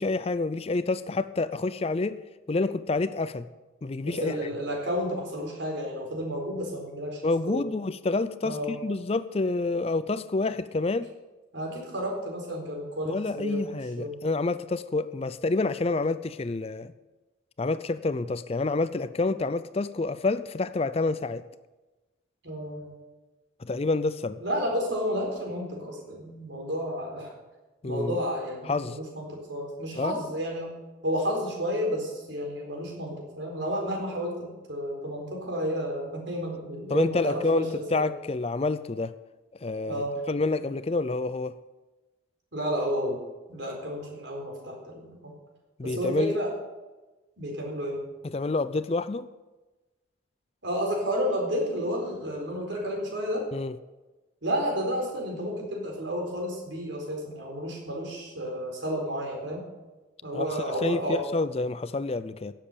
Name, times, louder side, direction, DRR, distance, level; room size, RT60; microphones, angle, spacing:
voice 1, 0.0-2.2 2.5-3.5 3.8-4.4 7.2-11.1 13.1-16.9 17.6-21.4 23.6-24.4 27.8-28.2 28.7-29.0 30.0-30.2 36.9-39.1 39.6-41.5 45.8-46.4 48.3-49.3 53.5-53.8 60.3-62.5, left 3 dB, 30° left, 14 dB, 0.4 m, -28 dB
voice 2, 4.0-7.6 8.4-8.7 11.5-14.2 22.4-22.9 24.4-27.3 27.8-30.7 31.0-38.1 39.9-40.2 42.5-43.2 43.5-45.3 45.8-46.5 47.4-48.0 50.6-53.5 54.4-59.7 60.2-61.2, equal, 70° right, 0 dB, 4.2 m, -31 dB
17.5 x 7.5 x 6.8 m, 1.2 s
head